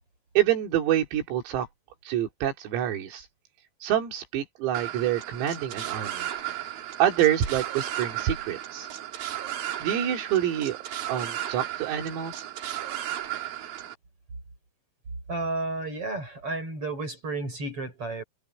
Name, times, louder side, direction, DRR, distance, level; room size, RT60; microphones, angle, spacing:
voice 1, 0.4-1.7 2.1-3.3 3.8-6.3 7.0-8.9 9.8-10.8 11.1-12.5, right 11 dB, 85° right, 5.9 m, -26 dB
sound 1, 4.7-13.9, right 12 dB, 55° right, 3.1 m, -35 dB
voice 2, 15.3-18.2, right 2 dB, 25° right, 6.3 m, -32 dB
open air
omnidirectional pair, 5.9 m